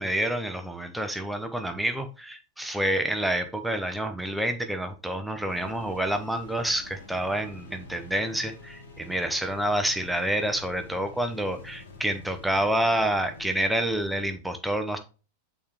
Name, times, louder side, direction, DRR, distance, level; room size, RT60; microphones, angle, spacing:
voice 1, 0.0-15.0, right 1 dB, 5° right, 0.8 m, -28 dB
sound 1, 5.5-14.3, left 3 dB, 65° left, 2.5 m, -47 dB
8.5 x 4.3 x 3.3 m
figure-of-eight pair, 90°, 0 cm